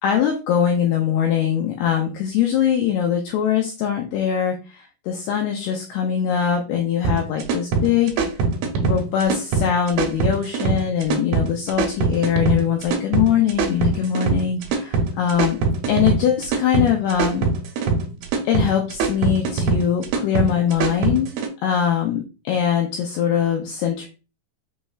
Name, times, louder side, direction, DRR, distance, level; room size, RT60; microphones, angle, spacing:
voice 1, 0.0-8.1 8.8-15.6 15.9-17.5 18.4-21.3 21.6-24.1, left 9 dB, 85° left, 2 dB, 2.2 m, -22 dB
sound 1, 7.0-21.5, right 4 dB, 80° right, 2.2 m, -22 dB
6.6 x 3.1 x 2.3 m, 0.31 s
omnidirectional pair, 5.3 m